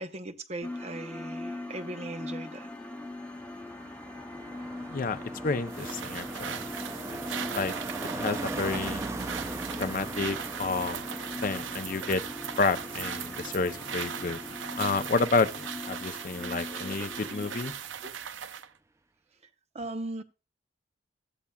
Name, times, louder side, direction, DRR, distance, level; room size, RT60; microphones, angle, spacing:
voice 1, 0.0-2.7 16.7-17.5 18.0-18.1 19.7-20.2, right 2 dB, 35° right, 0.7 m, -39 dB
sound 1, 0.6-17.7, left 2 dB, 10° left, 0.8 m, -41 dB
Car passing by, 2.6-17.4 17.7-18.0, right 2 dB, 15° right, 0.4 m, -41 dB
voice 2, 4.9-6.5 7.5-7.7 8.1-9.0 9.8-11.0 11.4-12.2 12.6-14.4 14.8-17.7, left 4 dB, 45° left, 0.5 m, -30 dB
sound 2, 5.7-18.7, right 8 dB, 85° right, 0.5 m, -39 dB
14.5 x 8.4 x 2.3 m
head